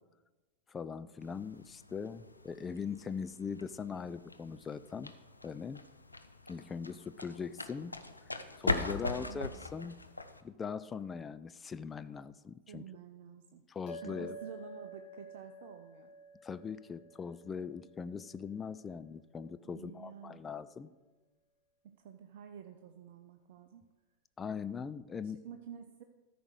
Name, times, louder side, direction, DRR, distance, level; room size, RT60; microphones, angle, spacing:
voice 1, 0.7-5.1 5.4-5.8 6.5-7.9 8.6-10.0 10.4-12.8 13.7-14.4 16.4-20.9 24.4-25.4, left 6 dB, 20° left, 13 dB, 0.4 m, -41 dB
sound 1, 1.2-10.4, left 2 dB, 85° left, 0.7 m, -41 dB
voice 2, 8.7-9.7 12.7-13.6 14.0-16.1 19.6-20.4 21.8-23.8 25.1-26.0, right 8 dB, 50° right, 7 dB, 0.6 m, -50 dB
sound 2, 13.9-18.5, equal, 40° left, 2.1 m, -50 dB
13.5 x 5.1 x 6.3 m, 1.2 s
figure-of-eight pair, 90°, 0 cm